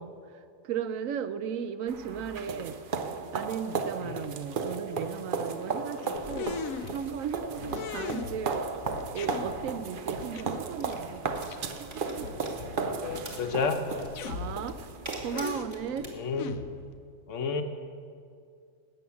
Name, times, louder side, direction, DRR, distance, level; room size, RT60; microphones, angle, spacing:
voice 1, 0.0-2.8 3.3-8.9 9.1-11.5 11.8-12.3 14.2-14.9 15.2-16.1, right 7 dB, 75° right, 12 dB, 1.0 m, -36 dB
sound 1, 1.9-15.6, right 5 dB, 50° right, 0.6 m, -35 dB
sound 2, 6.1-16.1, equal, 20° right, 1.9 m, -48 dB
sound 3, 6.3-7.3 7.6-8.6 8.8-9.7 10.1-10.4 10.8-10.9 11.3-11.6 11.9-12.0 12.2-13.3 13.6-13.7 14.0-14.9 15.2-17.0, left 7 dB, 80° left, 1.1 m, -39 dB
voice 2, 13.0-13.8 16.1-16.5 17.3-17.6, left 5 dB, 65° left, 7 dB, 1.2 m, -31 dB
12.5 x 8.4 x 7.1 m, 2.3 s
omnidirectional pair, 1.4 m